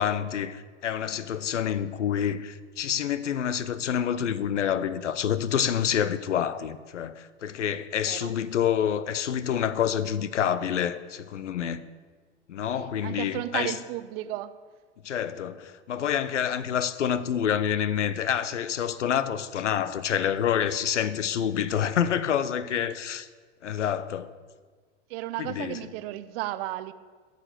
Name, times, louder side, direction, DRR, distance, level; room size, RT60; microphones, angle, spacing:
voice 1, 0.0-11.8 12.5-13.8 15.0-23.3 23.6-24.3 25.4-25.8, left 9 dB, 85° left, 0.6 m, -27 dB
voice 2, 12.7-14.5 25.1-26.9, right 15 dB, 55° right, 0.7 m, -34 dB
9.7 x 6.6 x 6.6 m
hypercardioid pair, 85°, 35 cm